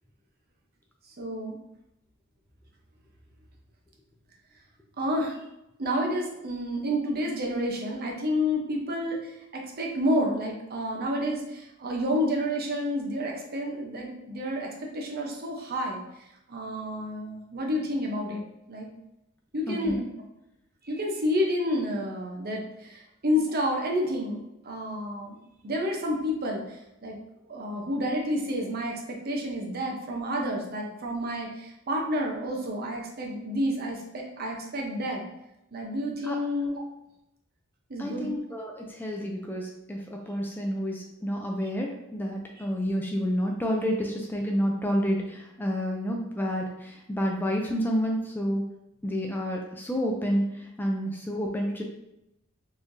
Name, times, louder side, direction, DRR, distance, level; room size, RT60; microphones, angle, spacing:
voice 1, 1.2-1.6 5.0-5.4 5.8-16.0 16.5-18.9 19.5-20.0 20.9-27.2 27.5-35.2 35.7-36.8 37.9-38.3 42.5-42.6, equal, 50° right, 0 dB, 0.8 m, -30 dB
voice 2, 19.7-20.1 36.2-36.4 38.0-48.6 49.0-51.8, equal, 10° left, 0 dB, 0.4 m, -29 dB
4.1 x 3.2 x 2.6 m, 0.87 s
head